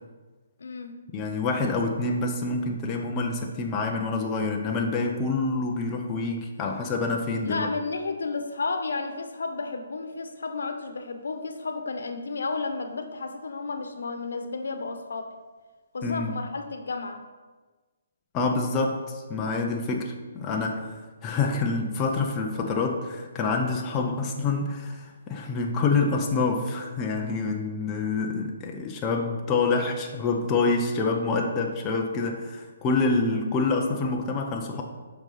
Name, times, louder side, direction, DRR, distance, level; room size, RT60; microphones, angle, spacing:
voice 1, 0.6-0.9 7.4-15.3 15.9-17.2, left 3 dB, 85° left, 7 dB, 0.9 m, -32 dB
voice 2, 1.1-7.7 16.0-16.4 18.3-34.8, left 3 dB, 15° left, 1 dB, 0.5 m, -27 dB
7.6 x 5.5 x 3.9 m, 1.3 s
hypercardioid pair, 175°, 0 cm